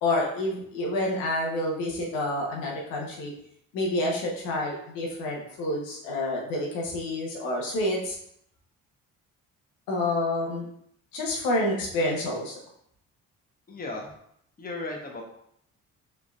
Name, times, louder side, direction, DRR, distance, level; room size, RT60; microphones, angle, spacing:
voice 1, 0.0-3.3 3.7-8.2 9.9-10.6 11.1-12.6, left 1 dB, 85° left, -2 dB, 1.1 m, -28 dB
voice 2, 13.7-14.1 14.6-15.2, left 2 dB, 25° left, 1 dB, 1.0 m, -35 dB
4.7 x 3.7 x 2.5 m, 0.71 s
supercardioid pair, 65°, 33 cm